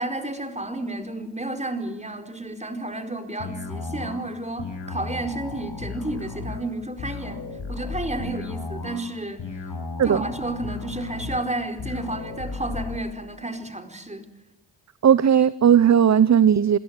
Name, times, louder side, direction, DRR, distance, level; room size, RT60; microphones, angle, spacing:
voice 1, 0.0-9.6 10.0-14.3, right 2 dB, 15° right, 4.6 m, -31 dB
sound 1, 3.4-13.0, left 4 dB, 70° left, 7.5 m, -35 dB
voice 2, 15.0-16.8, right 8 dB, 35° right, 0.8 m, -17 dB
27.5 x 17.0 x 9.0 m
supercardioid pair, 50°, 46 cm